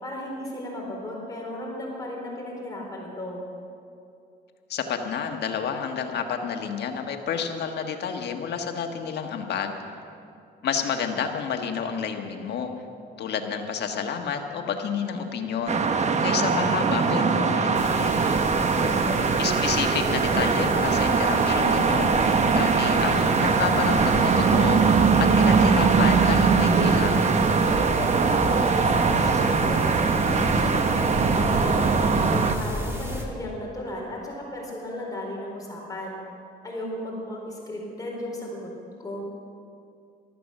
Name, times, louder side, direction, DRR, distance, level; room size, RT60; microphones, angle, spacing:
voice 1, 0.0-3.4 18.6-19.3 28.0-29.9 30.3-36.2 36.6-38.7 39.0-39.3, left 1 dB, 20° left, -2 dB, 4.3 m, -35 dB
voice 2, 4.7-9.8 10.6-12.7 13.2-18.1 19.4-22.1 22.5-27.3, left 6 dB, 65° left, 4 dB, 1.5 m, -30 dB
sound 1, 15.7-32.5, right 5 dB, 40° right, 1.0 m, -21 dB
sound 2, 17.7-33.2, right 1 dB, 15° right, 2.5 m, -33 dB
14.5 x 13.0 x 6.6 m, 2.5 s
cardioid pair, 95°, 18 cm